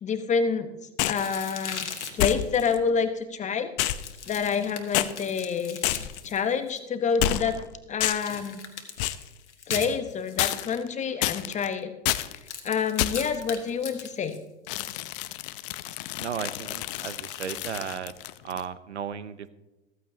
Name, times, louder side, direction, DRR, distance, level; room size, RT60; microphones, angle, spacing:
voice 1, 0.0-0.7 1.1-3.9 4.3-5.8 6.2-7.6 7.9-8.6 9.7-11.9 12.6-14.4, left 6 dB, 20° left, 9 dB, 1.0 m, -28 dB
sound 1, 1.0-1.3 2.2-2.8 3.8-4.6 4.9-5.1 5.8-6.3 7.2-7.6 8.0-8.4 9.0-9.3 10.4-10.9 11.2-11.7 12.0-12.4 13.0-13.4 14.7-18.6, left 14 dB, 55° left, 0.7 m, -29 dB
sound 2, 1.1-2.5 3.9-6.8 8.0-10.5 12.3-15.0 16.8-17.9, left 6 dB, 85° left, 1.6 m, -39 dB
voice 2, 16.2-18.1 18.4-19.5, right 7 dB, 85° right, 15 dB, 0.8 m, -35 dB
14.5 x 14.0 x 2.8 m, 1.0 s
hypercardioid pair, 95°, 34 cm